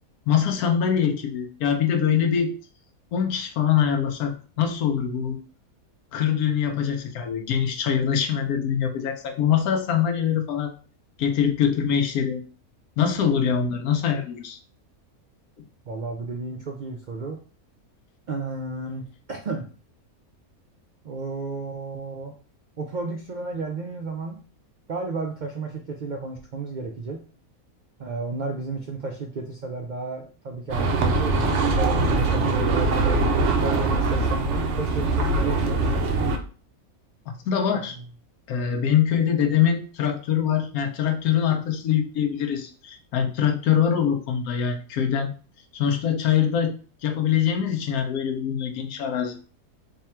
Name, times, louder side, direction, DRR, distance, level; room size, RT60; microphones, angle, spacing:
voice 1, 0.3-2.5 3.1-5.4 6.1-10.7 11.2-12.4 13.0-14.6 15.6-15.7 37.5-38.0 38.5-45.3 45.7-49.4, left 8 dB, 80° left, 4 dB, 1.1 m, -23 dB
voice 2, 15.9-17.4 18.3-19.7 21.0-22.3 22.8-24.4 24.9-27.2 28.0-33.2 33.6-35.8, right 3 dB, 80° right, 2 dB, 0.4 m, -32 dB
sound 1, 30.7-36.4, right 3 dB, 60° right, 0.9 m, -22 dB
3.6 x 2.2 x 4.3 m, 0.38 s
omnidirectional pair, 1.5 m